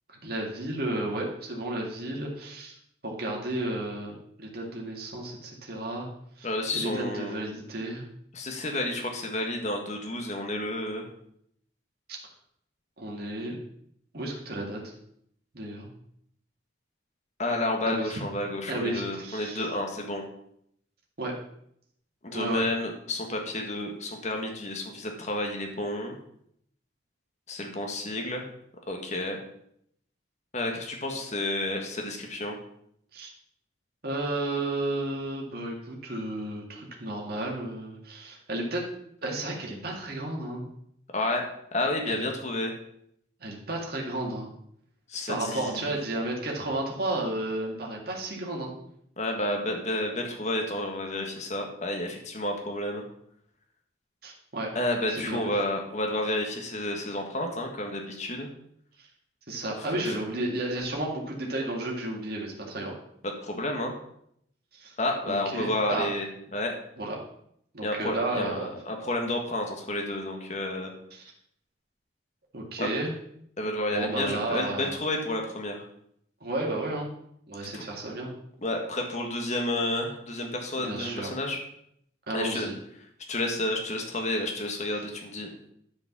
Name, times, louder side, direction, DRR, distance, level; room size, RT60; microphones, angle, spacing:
voice 1, 0.1-2.8 3.0-6.1 6.4-6.5 6.7-8.0 12.1-12.2 13.0-13.6 14.1-14.8 15.5-15.9 17.9-18.2 18.7-19.7 21.2-21.3 22.3-22.7 33.1-33.3 34.0-38.9 39.2-40.7 42.1-42.2 43.4-44.5 45.3-48.7 54.2-54.7 55.1-55.5 59.0-59.1 59.5-62.9 64.7-65.0 65.3-66.1 67.0-67.2 67.7-68.7 71.1-71.3 72.5-73.1 73.9-75.0 76.4-77.1 77.5-78.3 80.8-81.3 82.3-82.8, right 1 dB, 55° right, -1 dB, 2.1 m, -32 dB
voice 2, 6.4-7.4 8.3-11.1 17.4-20.2 22.2-26.2 27.5-28.4 28.9-29.4 30.5-32.6 41.1-41.4 41.7-42.7 45.1-46.0 49.2-53.0 54.7-58.5 60.0-60.2 63.4-63.9 65.0-66.7 67.8-70.9 72.8-72.9 73.6-75.8 77.7-77.8 78.6-81.6 82.3-82.7 83.3-85.5, left 1 dB, 40° left, 2 dB, 1.6 m, -30 dB
10.5 x 5.2 x 6.0 m, 0.71 s
head